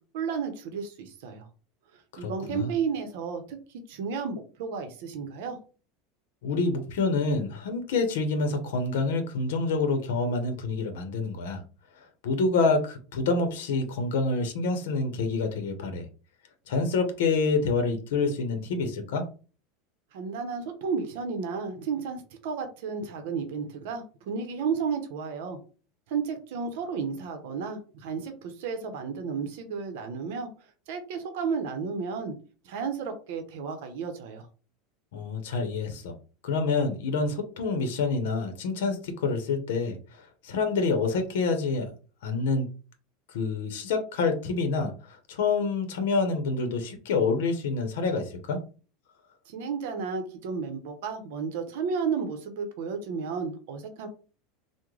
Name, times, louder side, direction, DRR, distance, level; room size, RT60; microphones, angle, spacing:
voice 1, 0.1-1.5 2.2-3.6 3.9-5.6 20.1-25.6 26.1-30.5 30.9-32.3 32.6-34.5 49.5-54.1, right 5 dB, 70° right, 6 dB, 0.7 m, -32 dB
voice 2, 2.2-2.7 6.4-11.6 12.2-16.1 16.7-19.3 35.1-36.1 36.4-41.9 42.2-42.7 43.3-48.6, left 4 dB, 80° left, 6 dB, 0.7 m, -27 dB
3.7 x 2.1 x 3.1 m, 0.37 s
supercardioid pair, 160°, 0 cm